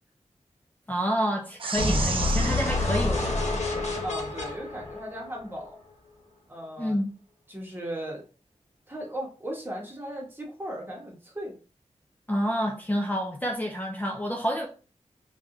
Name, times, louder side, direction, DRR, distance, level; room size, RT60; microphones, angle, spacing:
voice 1, 0.9-3.4 6.8-7.1 12.3-14.7, equal, 15° left, 0.5 m, -28 dB
sound 1, 1.6-4.3, right 5 dB, 45° right, 0.4 m, -35 dB
sound 2, 1.8-5.7, left 2 dB, 65° left, 1.0 m, -28 dB
voice 2, 4.0-5.7 6.5-7.0 7.5-8.2 8.9-11.6, right 1 dB, 20° right, 1.2 m, -37 dB
3.3 x 2.4 x 2.7 m
cardioid pair, 55°, 12 cm